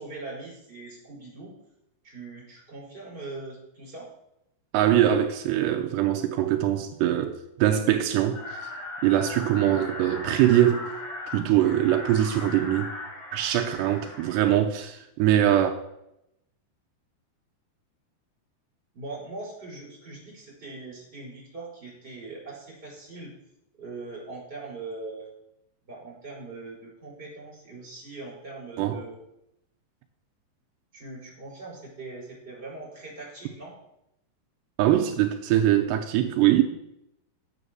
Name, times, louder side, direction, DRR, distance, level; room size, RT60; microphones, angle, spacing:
voice 1, 0.0-1.5 2.0-4.1 18.9-23.3 23.8-25.3 25.9-29.2 30.9-33.8, right 3 dB, 15° right, 5.0 m, -41 dB
voice 2, 4.7-8.7 9.0-10.9 11.3-12.9 13.3-15.7 28.8-29.0 34.8-36.6, right 12 dB, 85° right, 2.8 m, -22 dB
sound 1, 8.3-14.5, left 2 dB, 40° left, 4.3 m, -38 dB
9.7 x 8.4 x 6.3 m
omnidirectional pair, 4.9 m